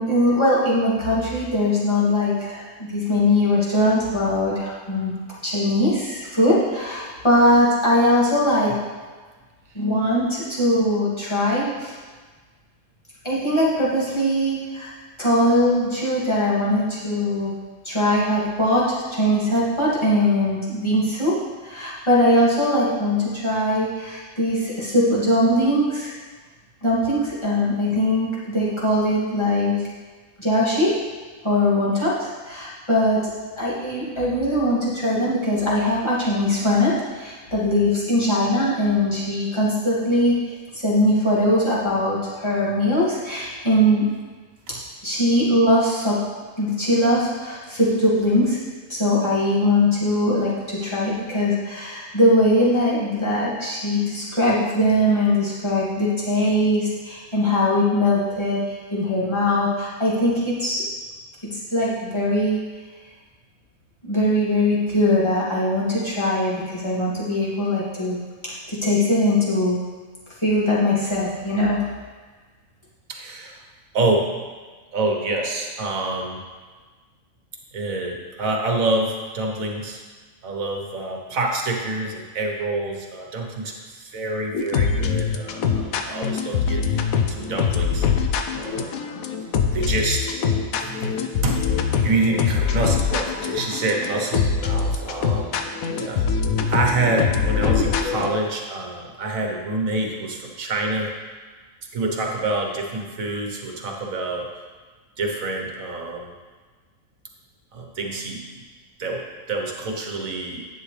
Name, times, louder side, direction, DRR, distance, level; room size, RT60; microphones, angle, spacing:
voice 1, 0.0-5.1 5.4-8.8 9.7-11.9 13.2-14.9 15.2-17.5 17.8-21.3 21.6-26.1 26.8-29.9 30.4-30.9 31.4-33.2 33.6-40.3 40.7-44.1 45.0-46.2 46.6-48.6 48.9-58.6 58.9-60.8 61.5-62.6 64.0-68.2 68.4-69.8 70.4-71.9, left 1 dB, 20° left, -9 dB, 2.5 m, -21 dB
voice 2, 73.1-73.6 73.9-74.3 74.9-76.4 77.7-80.0 80.4-88.1 88.5-89.0 89.7-90.3 90.8-91.7 92.0-95.6 96.0-96.3 96.7-101.1 101.9-104.5 105.2-106.3 107.7-108.7 109.0-110.6, right 2 dB, 75° right, 2 dB, 1.6 m, -27 dB
sound 1, 84.5-98.3, left 6 dB, 90° left, 1.1 m, -23 dB
10.5 x 8.1 x 3.3 m, 1.4 s
omnidirectional pair, 1.4 m